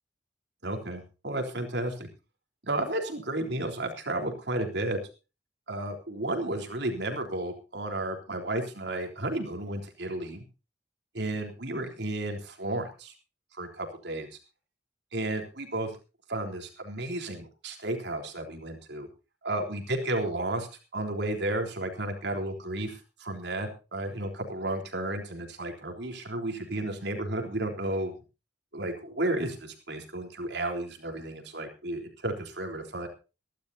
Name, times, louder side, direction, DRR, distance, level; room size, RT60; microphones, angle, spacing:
voice 1, 0.6-2.1 2.7-5.0 5.7-10.4 11.1-13.1 13.6-14.3 15.1-15.9 16.3-19.1 19.4-20.7 20.9-28.1 28.7-33.1, right 1 dB, 65° right, 3 dB, 3.8 m, -32 dB
23.5 x 12.0 x 2.8 m, 0.32 s
head